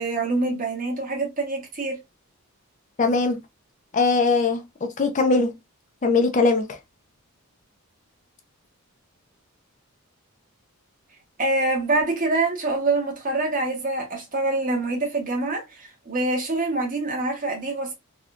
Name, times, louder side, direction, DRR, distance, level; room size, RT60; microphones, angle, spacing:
voice 1, 0.0-2.0 11.4-17.9, right 2 dB, 40° right, 1.0 m, -25 dB
voice 2, 3.0-3.4 3.9-4.6 5.0-5.5 6.0-6.8, left 3 dB, 35° left, 0.4 m, -20 dB
3.5 x 2.2 x 2.4 m
head